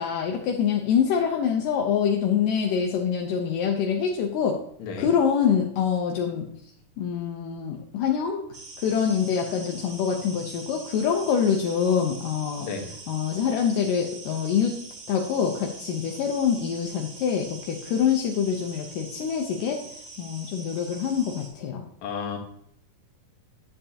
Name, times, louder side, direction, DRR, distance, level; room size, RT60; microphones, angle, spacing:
voice 1, 0.0-4.6 5.0-6.5 7.0-8.5 8.8-12.7 13.1-14.7 15.1-19.8 20.2-21.8, left 7 dB, 80° left, 1 dB, 2.3 m, -25 dB
sound 1, 8.5-21.5, right 3 dB, 60° right, 2.9 m, -44 dB
voice 2, 12.6-12.9 22.0-22.4, left 5 dB, 65° left, 2 dB, 2.4 m, -32 dB
9.8 x 7.8 x 2.8 m, 0.68 s
omnidirectional pair, 3.9 m